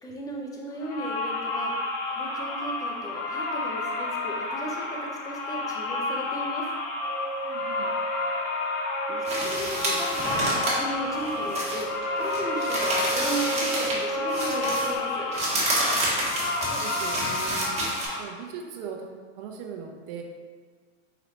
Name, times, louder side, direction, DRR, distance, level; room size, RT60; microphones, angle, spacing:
voice 1, 0.0-1.7 2.1-6.7 9.1-10.2 10.5-11.9 12.2-15.3, right 1 dB, 10° left, -1 dB, 0.4 m, -36 dB
sound 1, 0.8-18.2, left 2 dB, 55° left, 0.8 m, -31 dB
sound 2, 7.0-15.0, right 2 dB, 75° right, 1.1 m, -34 dB
voice 2, 7.4-7.9 16.5-17.8 18.2-20.2, right 6 dB, 45° right, 2 dB, 0.7 m, -39 dB
sound 3, 9.2-14.0 14.3-18.1, right 1 dB, 20° right, 1.2 m, -29 dB
4.3 x 4.0 x 2.9 m, 1.5 s
hypercardioid pair, 125°, 37 cm